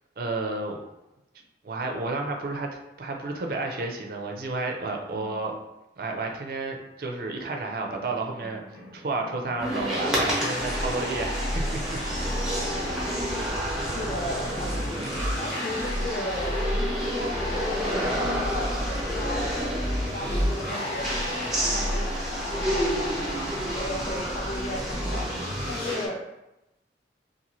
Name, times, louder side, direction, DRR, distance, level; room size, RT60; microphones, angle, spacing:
voice 1, 0.2-0.8 1.6-5.5 6.0-8.6 8.9-12.0, right 3 dB, 55° right, 2 dB, 0.4 m, -31 dB
sound 1, 7.5-14.3, equal, 70° left, 1.1 m, -51 dB
sound 2, 9.6-26.1, equal, 5° right, 0.6 m, -30 dB
sound 3, 10.2-26.0, equal, 90° left, 1.2 m, -32 dB
voice 2, 13.3-15.0 15.4-21.1 21.5-25.3 25.7-26.2, left 1 dB, 40° left, 0 dB, 0.5 m, -37 dB
2.7 x 2.5 x 2.9 m, 0.93 s
head